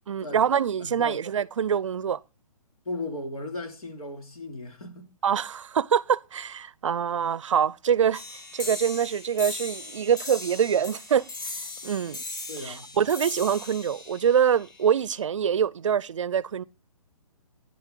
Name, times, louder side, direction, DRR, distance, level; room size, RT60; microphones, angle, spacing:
voice 1, 0.1-2.2 5.2-11.3 11.8-12.2 12.6-16.6, right 8 dB, 60° right, 0.5 m, -25 dB
voice 2, 0.8-1.2 2.8-5.1 12.5-12.9, left 2 dB, 85° left, 2.8 m, -36 dB
sound 1, 8.1-15.1, left 3 dB, 30° left, 1.6 m, -38 dB
10.0 x 8.1 x 3.7 m
hypercardioid pair, 180°, 18 cm